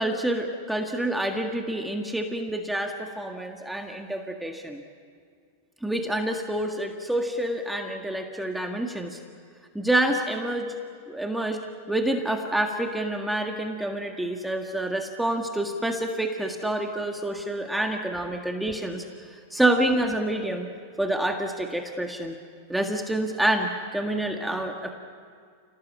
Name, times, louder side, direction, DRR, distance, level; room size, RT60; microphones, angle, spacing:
voice 1, 0.0-4.8 5.8-9.2 9.8-10.7 11.1-11.6 11.9-19.0 19.3-20.7 21.0-22.4 22.7-24.9, right 1 dB, 5° right, 3 dB, 1.8 m, -27 dB
28.0 x 18.5 x 8.6 m, 2.2 s
hypercardioid pair, 110°, 0 cm